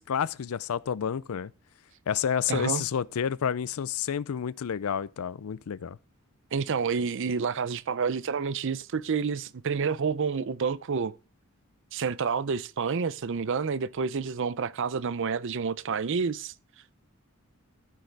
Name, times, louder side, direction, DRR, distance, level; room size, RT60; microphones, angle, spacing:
voice 1, 0.0-1.5 2.1-6.0, left 8 dB, 75° left, 0.4 m, -30 dB
voice 2, 2.5-2.8 6.5-11.1 11.9-16.5, right 5 dB, 60° right, 0.5 m, -29 dB
14.0 x 6.5 x 3.4 m
head